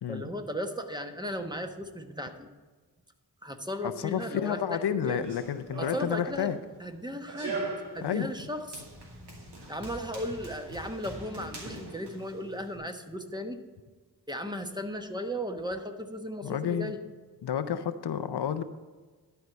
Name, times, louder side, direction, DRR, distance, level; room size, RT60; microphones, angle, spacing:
voice 1, 0.1-2.5 3.4-5.2 5.8-7.6 7.9-8.8 9.7-13.6 14.3-17.0, equal, 10° right, 6 dB, 1.1 m, -36 dB
voice 2, 3.8-6.6 8.0-8.3 16.4-16.9 17.4-18.6, left 9 dB, 80° left, 11 dB, 0.6 m, -30 dB
Run, 5.0-12.8, right 2 dB, 85° right, 2.3 m, -42 dB
12.0 x 4.7 x 7.9 m, 1.4 s
cardioid pair, 50°, 40 cm